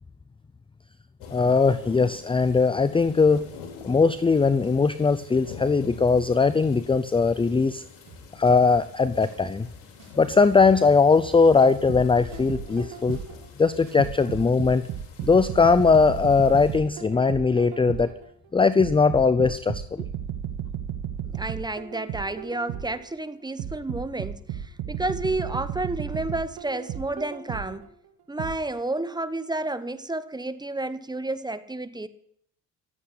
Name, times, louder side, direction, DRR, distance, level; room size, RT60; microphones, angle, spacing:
sound 1, 1.2-16.8, left 6 dB, 80° left, 3.2 m, -46 dB
voice 1, 1.3-3.4 3.8-7.8 8.4-9.7 10.2-13.2 13.6-14.9 15.2-18.1 18.5-20.0, left 4 dB, 15° left, 0.5 m, -20 dB
sound 2, 8.1-14.1, right 1 dB, 50° right, 5.4 m, -49 dB
sound 3, 11.9-13.5 14.0-18.3 18.8-23.1 23.6-27.9 28.4-28.5, right 9 dB, 70° right, 2.1 m, -34 dB
voice 2, 21.3-27.9 28.3-32.1, right 2 dB, 10° right, 1.0 m, -31 dB
14.0 x 8.5 x 8.1 m
supercardioid pair, 70°, 41 cm